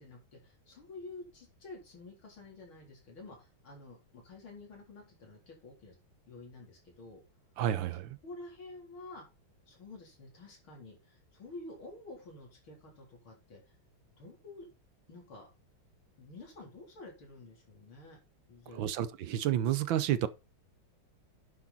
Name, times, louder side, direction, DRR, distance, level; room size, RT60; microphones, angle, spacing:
voice 1, 0.0-6.0 6.3-7.2 7.8-7.9 8.2-9.2 9.7-13.6 14.2-14.7 15.1-15.5 16.2-18.2 18.5-18.8, left 2 dB, 70° left, 4.6 m, -50 dB
voice 2, 7.6-8.2 18.7-20.3, right 11 dB, 70° right, 1.5 m, -30 dB
10.0 x 6.5 x 4.2 m
omnidirectional pair, 2.3 m